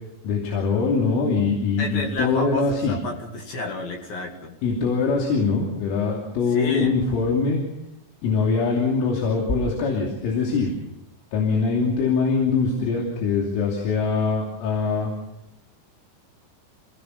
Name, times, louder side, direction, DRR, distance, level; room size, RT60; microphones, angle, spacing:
voice 1, 0.2-3.0 4.6-7.6 8.2-10.7 11.3-15.1, left 4 dB, 90° left, -1 dB, 5.4 m, -23 dB
voice 2, 1.8-4.6 6.5-7.0, left 2 dB, 55° left, 2 dB, 3.7 m, -31 dB
27.0 x 18.0 x 5.5 m, 0.87 s
omnidirectional pair, 5.6 m